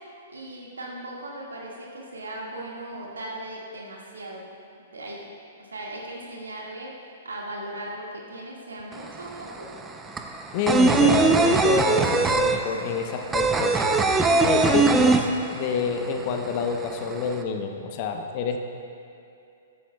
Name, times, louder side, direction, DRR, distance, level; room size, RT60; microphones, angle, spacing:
voice 1, 0.3-4.5 4.9-5.3 5.6-6.9 7.2-9.7, right 1 dB, 80° right, -3 dB, 1.9 m, -38 dB
sound 1, 8.9-9.0 9.3-15.9 16.1-16.2 16.5-17.3, right 3 dB, 15° right, 0.6 m, -20 dB
voice 2, 10.5-14.0 14.4-18.6, left 5 dB, 45° left, 4 dB, 0.9 m, -28 dB
14.5 x 9.4 x 2.3 m, 2.6 s
hypercardioid pair, 115°, 0 cm